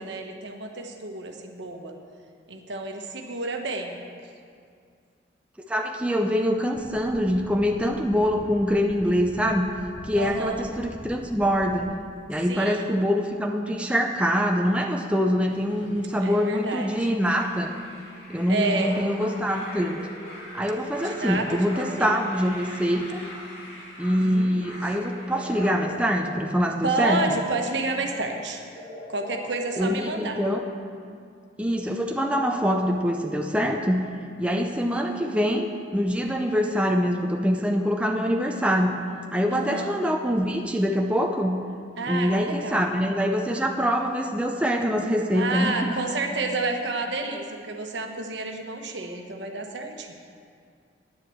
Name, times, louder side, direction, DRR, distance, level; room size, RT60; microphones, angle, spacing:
voice 1, 0.0-1.9 2.5-4.0 10.1-10.7 12.5-12.9 16.2-17.1 18.5-19.0 21.0-22.1 24.1-24.6 26.8-28.6 29.1-30.4 39.5-39.9 42.0-42.9 45.3-50.1, right 2 dB, 75° right, 3 dB, 1.1 m, -30 dB
voice 2, 5.7-9.7 10.0-12.0 12.3-17.8 18.3-20.0 20.5-23.2 24.0-27.4 29.8-30.6 31.6-34.1 34.4-39.0 39.3-41.6 42.1-46.0, equal, 5° right, 2 dB, 0.5 m, -24 dB
sound 1, 6.7-11.8, equal, 15° left, 0.9 m, -43 dB
sound 2, 15.5-25.7, left 1 dB, 70° left, 2.3 m, -43 dB
sound 3, 25.3-27.4 28.8-30.8 32.2-32.9, left 1 dB, 30° left, 2.8 m, -43 dB
9.6 x 7.3 x 7.8 m, 2.2 s
head